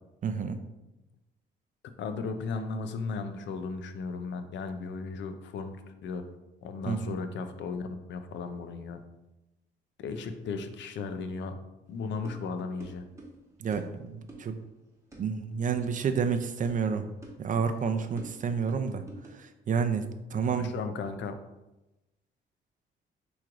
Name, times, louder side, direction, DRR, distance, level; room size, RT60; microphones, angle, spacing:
voice 1, 0.2-0.6 6.9-7.2 13.6-14.6 15.2-17.1 17.4-19.0 19.3-20.7, right 6 dB, 40° right, 8 dB, 0.4 m, -30 dB
voice 2, 2.0-5.8 6.0-6.2 6.6-9.0 10.0-11.6 11.9-13.0 20.6-21.4, left 4 dB, 65° left, 9 dB, 0.5 m, -35 dB
sound 1, 11.9-19.5, right 2 dB, 15° right, 1.2 m, -50 dB
5.8 x 3.0 x 2.5 m, 0.98 s
cardioid pair, 90°, 20 cm